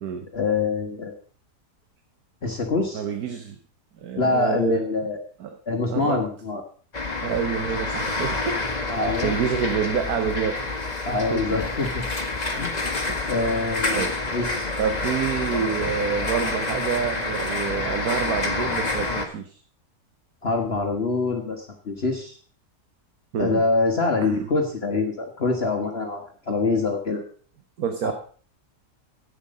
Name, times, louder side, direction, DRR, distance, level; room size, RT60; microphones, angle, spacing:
voice 1, 0.3-1.1 2.4-3.0 4.2-5.2 5.7-6.6 8.9-9.3 11.0-12.0 12.6-12.7 13.3-14.7 20.4-22.4 23.4-27.2 28.0-28.1, left 3 dB, 40° left, 2 dB, 1.4 m, -25 dB
voice 2, 2.9-3.6 4.0-4.8 5.4-5.6 5.9-6.2 7.2-8.9 9.2-10.6 11.3-11.5 13.1-13.2 13.9-14.1 14.8-19.5 23.3-23.6 24.2-24.5 27.8-28.1, right 7 dB, 70° right, 6 dB, 1.5 m, -27 dB
sound 1, 6.9-19.3, left 2 dB, 25° left, 1.5 m, -28 dB
11.5 x 8.6 x 5.2 m, 0.43 s
omnidirectional pair, 1.7 m